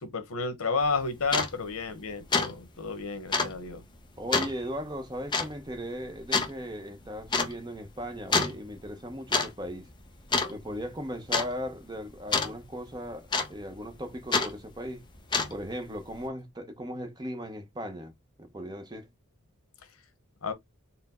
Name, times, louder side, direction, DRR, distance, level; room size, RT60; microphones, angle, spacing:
voice 1, 0.0-3.8 20.4-20.5, left 4 dB, 80° left, 1.0 m, -31 dB
sound 1, 0.8-0.9 1.3-1.5 1.9-2.1 2.3-2.5 2.8-2.9 3.3-3.5 4.3-4.5 5.3-5.5 6.3-6.5 7.3-7.5 8.3-8.6 9.1-9.5 9.7-10.0 10.3-10.8 11.3-11.5 12.3-12.5 13.3-13.7 14.3-14.5 15.2-15.7, left 4 dB, 20° left, 0.6 m, -26 dB
voice 2, 4.2-9.9 10.5-15.0 15.5-18.1 18.4-19.1, equal, 20° right, 0.7 m, -37 dB
4.2 x 2.0 x 4.1 m
head